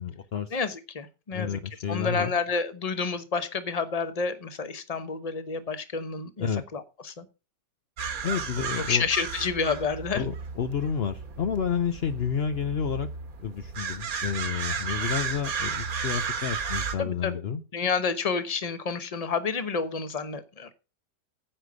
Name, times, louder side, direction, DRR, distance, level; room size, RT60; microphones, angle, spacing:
voice 1, 0.0-0.5 1.3-2.3 6.4-6.6 8.2-9.0 10.1-13.1 13.4-17.6, left 7 dB, 65° left, 0.6 m, -30 dB
voice 2, 0.5-1.6 1.9-7.2 8.7-10.2 15.0-15.1 17.0-17.4 17.7-20.7, left 5 dB, 30° left, 0.8 m, -29 dB
sound 1, 8.0-16.9, right 6 dB, 55° right, 1.6 m, -33 dB
10.0 x 8.1 x 5.0 m
omnidirectional pair, 1.9 m